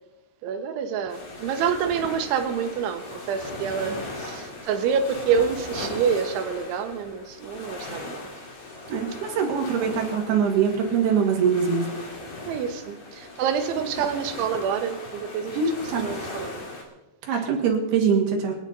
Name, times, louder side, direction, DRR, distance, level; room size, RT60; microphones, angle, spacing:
voice 1, 0.4-8.3 9.1-9.2 12.5-15.6 16.0-16.6 17.3-17.4, right 7 dB, 75° right, 6 dB, 3.2 m, -27 dB
sound 1, 1.1-16.8, left 2 dB, 40° left, 2.5 m, -38 dB
voice 2, 8.9-11.9 15.6-16.1 17.3-18.6, right 6 dB, 60° right, 1 dB, 3.3 m, -23 dB
26.0 x 9.7 x 3.9 m, 0.99 s
omnidirectional pair, 5.9 m